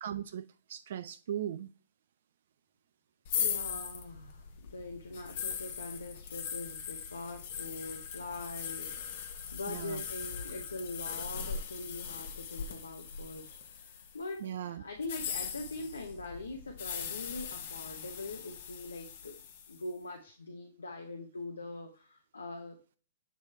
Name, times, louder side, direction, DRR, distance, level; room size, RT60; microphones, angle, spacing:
voice 1, 0.0-1.7 9.7-10.0 14.4-14.8, right 10 dB, 65° right, 0.4 m, -38 dB
sound 1, 3.2-14.2 15.0-19.8, left 7 dB, 55° left, 1.0 m, -40 dB
voice 2, 3.4-19.3 19.7-22.8, left 2 dB, 90° left, 0.9 m, -43 dB
7.9 x 3.2 x 4.2 m
hypercardioid pair, 115°, 0 cm